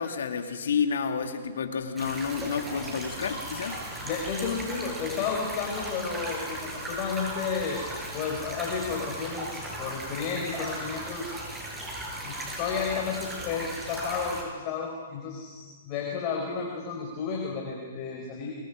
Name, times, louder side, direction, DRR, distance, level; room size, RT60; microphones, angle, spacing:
voice 1, 0.0-3.8, left 6 dB, 70° left, 5 dB, 2.4 m, -30 dB
sound 1, 2.0-14.4, right 1 dB, 10° right, 7.7 m, -37 dB
voice 2, 4.0-7.8 8.1-11.3 12.2-18.5, left 5 dB, 35° left, 0 dB, 4.8 m, -32 dB
27.5 x 24.0 x 5.1 m, 1.5 s
hypercardioid pair, 125°, 0 cm